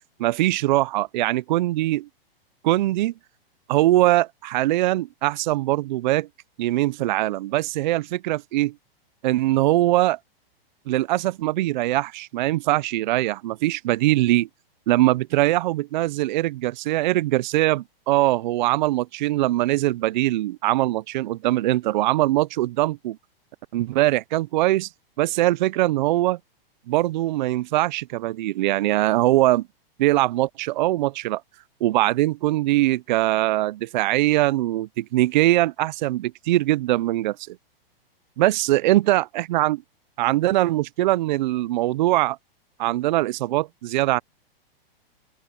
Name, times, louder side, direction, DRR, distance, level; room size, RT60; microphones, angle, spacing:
voice 1, 0.2-2.1 2.6-3.1 3.7-6.3 6.6-8.7 9.2-10.2 10.9-14.5 14.9-23.2 23.7-24.9 25.2-26.4 26.9-29.7 30.0-31.4 31.8-37.6 38.4-39.8 40.2-42.4 42.8-44.2, right 16 dB, 50° right, 0.4 m, -22 dB
open air
hypercardioid pair, 155°, 30 cm